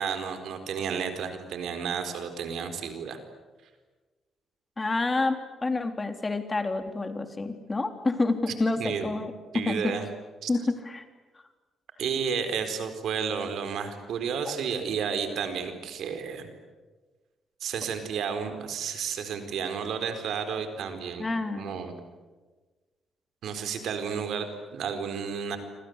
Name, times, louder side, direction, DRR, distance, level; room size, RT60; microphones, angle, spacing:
voice 1, 0.0-3.2 8.8-9.1 9.5-10.1 10.4-10.5 12.0-16.5 17.6-21.2 21.6-21.9 23.4-25.6, right 6 dB, 75° right, 8 dB, 4.4 m, -32 dB
voice 2, 4.8-5.4 5.6-9.9 10.5-10.6 10.9-11.0 21.2-21.7, left 3 dB, 25° left, 7 dB, 3.4 m, -28 dB
28.5 x 25.5 x 8.1 m, 1.3 s
cardioid pair, 80°, 0 cm